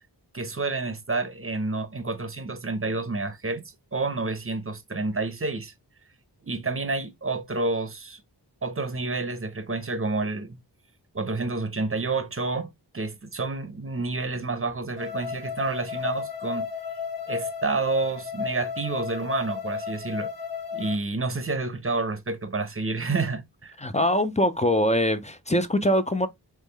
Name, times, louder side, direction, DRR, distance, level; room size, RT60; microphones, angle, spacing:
voice 1, 0.3-5.7 6.4-8.2 8.6-10.6 11.1-12.7 12.9-16.7 17.3-20.3 20.7-23.7, right 3 dB, 30° right, 0.8 m, -29 dB
sound 1, 15.0-21.0, left 6 dB, 50° left, 1.6 m, -33 dB
voice 2, 23.8-26.3, equal, 15° left, 0.6 m, -23 dB
3.6 x 3.2 x 3.3 m
wide cardioid pair, 50°, 42 cm